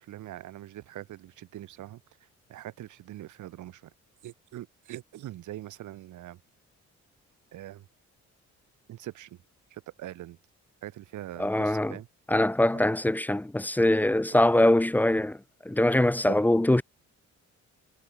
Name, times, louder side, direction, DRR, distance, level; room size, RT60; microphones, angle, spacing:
voice 1, 0.0-2.0 2.5-3.9 4.2-6.4 7.5-7.9 8.9-9.4 9.7-10.4 10.8-12.1 12.7-12.9 14.3-14.4 16.3-16.4, right 14 dB, 75° right, 1.6 m, -42 dB
voice 2, 11.4-12.0 12.3-15.4 15.7-16.8, left 1 dB, 5° left, 0.5 m, -23 dB
cardioid pair, 90°, 30 cm